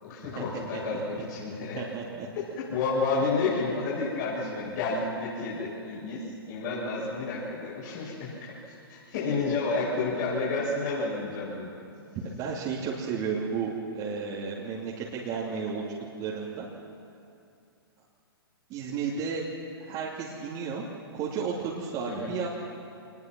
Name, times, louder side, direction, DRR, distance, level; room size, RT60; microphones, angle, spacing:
voice 1, 0.0-1.9 2.6-8.4 8.7-11.7 22.1-22.3, left 3 dB, 45° left, -7 dB, 7.1 m, -30 dB
voice 2, 1.8-2.3 12.2-15.8 16.2-16.7 18.7-19.4 19.8-20.8 21.1-22.5, right 6 dB, 30° right, -4 dB, 2.7 m, -33 dB
26.5 x 20.5 x 6.1 m, 2.5 s
hypercardioid pair, 125°, 13 cm